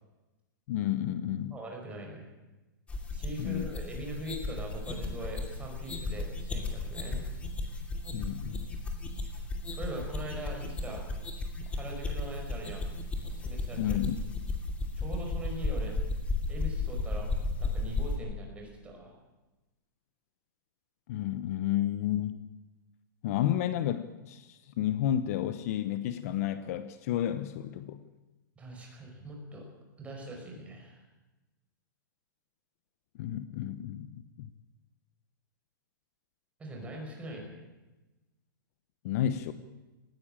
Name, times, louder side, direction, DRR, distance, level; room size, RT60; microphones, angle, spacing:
voice 1, 0.7-1.6 3.4-3.7 8.1-8.7 13.8-14.2 21.1-22.4 23.2-28.0 33.2-34.5 39.0-39.5, left 11 dB, 45° left, 12 dB, 1.0 m, -31 dB
voice 2, 1.5-2.3 3.1-7.2 9.7-11.0 11.7-12.9 13.2-14.0 15.0-16.0 16.5-17.3 17.6-19.1 28.6-29.7 30.0-31.0 36.6-37.6, right 1 dB, 10° right, 1 dB, 5.1 m, -42 dB
sound 1, 2.9-18.2, left 3 dB, 10° left, 2.5 m, -34 dB
19.0 x 16.0 x 8.9 m, 1.1 s
hypercardioid pair, 155°, 11 cm